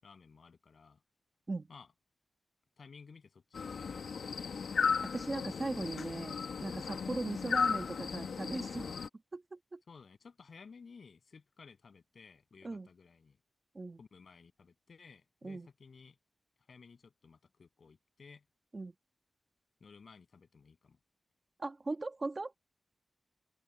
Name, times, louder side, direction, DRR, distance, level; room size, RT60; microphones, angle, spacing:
voice 1, 0.0-1.0 1.7-1.9 2.8-4.4 7.1-7.2 9.9-13.4 14.0-16.2 16.7-18.4 19.8-21.0, left 5 dB, 55° left, 7.4 m, -56 dB
sound 1, 3.5-9.1, left 5 dB, 85° left, 1.5 m, -35 dB
voice 2, 5.1-6.4 6.6-9.0 9.3-9.8 12.6-12.9 13.7-14.0 15.4-15.7 18.7-18.9 21.6-22.5, right 3 dB, 30° right, 1.4 m, -39 dB
open air
wide cardioid pair, 175°, 0 cm